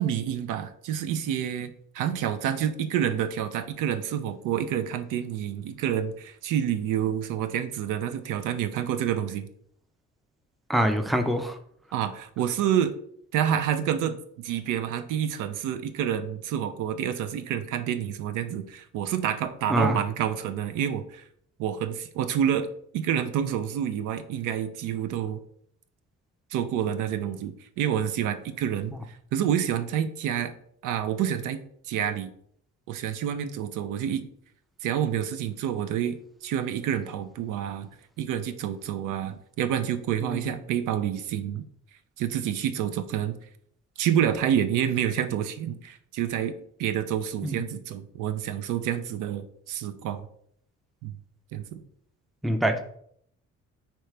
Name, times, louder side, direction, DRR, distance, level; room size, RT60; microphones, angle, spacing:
voice 1, 0.0-9.5 11.9-12.9 13.3-21.2 21.6-22.7 22.9-25.4 26.5-28.9 29.3-30.5 30.8-32.3 32.9-34.3 34.8-37.9 38.2-41.6 42.2-43.3 44.0-46.5 46.8-50.2 51.0-51.1 51.5-51.8, right 9 dB, 90° right, 11 dB, 0.5 m, -28 dB
voice 2, 10.7-11.5 19.7-20.0 40.2-40.5 47.4-47.6 52.4-52.8, right 1 dB, ahead, 7 dB, 0.4 m, -24 dB
4.6 x 2.8 x 3.2 m, 0.66 s
cardioid pair, 90°, 30 cm